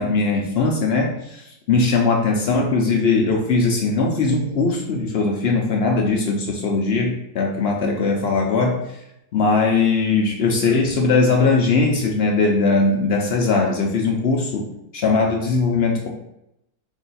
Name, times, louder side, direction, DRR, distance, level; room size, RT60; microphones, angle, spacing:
voice 1, 0.0-8.8 9.3-14.7 14.9-16.1, left 3 dB, 70° left, 1 dB, 0.5 m, -20 dB
4.8 x 2.3 x 4.0 m, 0.82 s
omnidirectional pair, 1.7 m